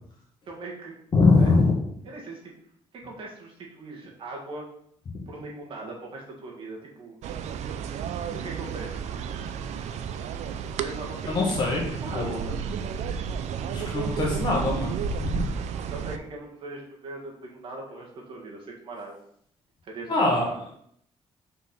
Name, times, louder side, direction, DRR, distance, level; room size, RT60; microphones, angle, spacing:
voice 1, 0.5-0.9 1.3-1.5 2.0-2.5 2.9-4.7 5.3-7.1 8.3-9.2 10.8-11.5 11.8-12.6 15.9-19.2 19.8-20.3, right 2 dB, 50° right, -2 dB, 1.8 m, -40 dB
voice 2, 1.1-1.7 5.1-5.2 11.3-11.8 12.1-12.5 13.7-15.4 20.1-20.5, left 3 dB, 40° left, -4 dB, 1.9 m, -23 dB
sound 1, 7.2-16.2, right 7 dB, 75° right, 0.6 m, -32 dB
5.9 x 4.6 x 5.9 m, 0.68 s
cardioid pair, 180°, 12 cm